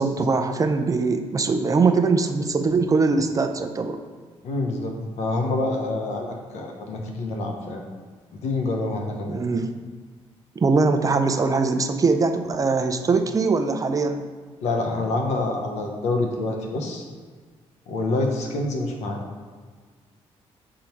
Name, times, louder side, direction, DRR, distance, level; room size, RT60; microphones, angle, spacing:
voice 1, 0.0-4.0 9.3-9.7 10.6-14.3, right 4 dB, 30° right, 7 dB, 0.5 m, -22 dB
voice 2, 4.4-7.8 8.4-9.4 14.6-17.0 17.9-19.2, left 2 dB, 85° left, 2 dB, 1.1 m, -26 dB
7.1 x 3.7 x 4.5 m, 1.5 s
cardioid pair, 95°, 11 cm